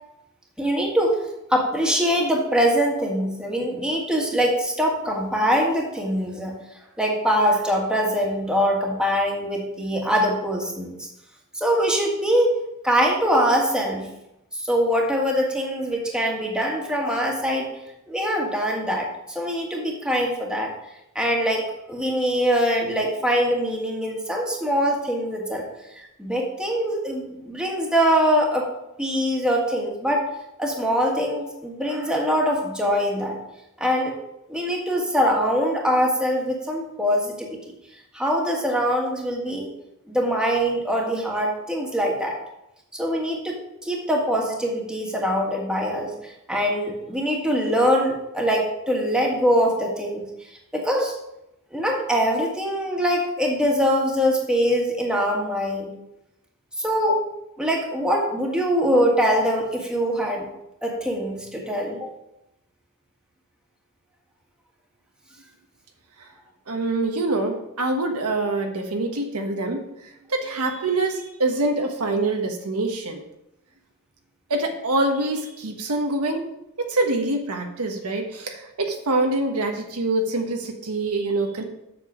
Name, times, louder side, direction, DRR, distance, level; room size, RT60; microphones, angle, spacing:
voice 1, 0.6-1.2 1.5-6.6 7.0-11.1 11.5-12.5 12.8-14.1 14.6-17.7 18.1-20.7 21.2-25.7 26.2-28.7 29.0-30.3 30.6-33.4 33.8-34.1 34.5-37.6 38.1-39.7 40.1-42.4 42.9-50.3 50.7-51.2 51.7-55.9 56.8-57.2 57.6-60.5 60.8-62.1, equal, 5° right, -1 dB, 1.6 m, -23 dB
voice 2, 66.7-73.2 74.5-76.5 76.8-81.6, right 2 dB, 80° right, 3 dB, 1.2 m, -25 dB
7.6 x 6.8 x 4.9 m, 0.85 s
head